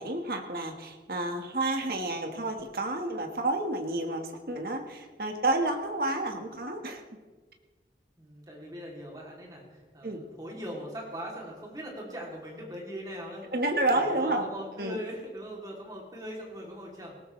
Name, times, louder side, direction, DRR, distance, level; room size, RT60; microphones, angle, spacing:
voice 1, 0.0-7.0 10.0-10.2 13.5-14.5 14.8-15.0, right 2 dB, 55° right, 4 dB, 1.6 m, -30 dB
voice 2, 8.2-13.4 13.9-17.2, equal, 20° right, -2 dB, 3.0 m, -40 dB
19.0 x 18.0 x 3.3 m, 1.3 s
head